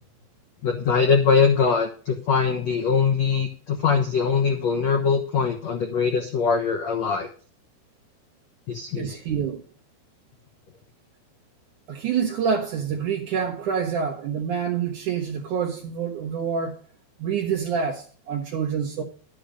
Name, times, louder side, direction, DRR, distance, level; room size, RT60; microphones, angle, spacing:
voice 1, 0.6-7.3 8.7-9.1, left 5 dB, 75° left, 1.5 m, -22 dB
voice 2, 9.0-9.6 11.9-16.8 17.2-19.0, right 7 dB, 60° right, 2.2 m, -27 dB
12.0 x 8.0 x 5.1 m
omnidirectional pair, 5.2 m